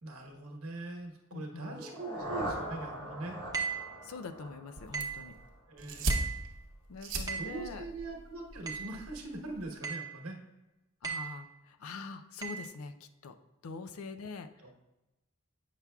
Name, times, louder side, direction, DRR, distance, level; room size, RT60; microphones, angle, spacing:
voice 1, 0.0-3.4 5.7-6.2 7.4-10.4 14.6-14.7, right 2 dB, 80° right, 2 dB, 1.1 m, -42 dB
voice 2, 1.3-1.9 4.0-5.3 6.9-7.8 11.0-13.4 13.6-14.5, left 4 dB, 80° left, 10 dB, 0.5 m, -44 dB
sound 1, 1.6-5.6, equal, 25° left, 1.6 m, -41 dB
sound 2, 3.5-3.9 4.9-5.3 6.1-6.5 7.3-7.6 8.7-9.0 9.8-10.2 11.0-11.4 12.4-12.6, right 6 dB, 15° right, 0.7 m, -36 dB
sound 3, 4.8-9.8, right 2 dB, 60° right, 0.8 m, -38 dB
8.2 x 5.9 x 2.3 m, 1.0 s
head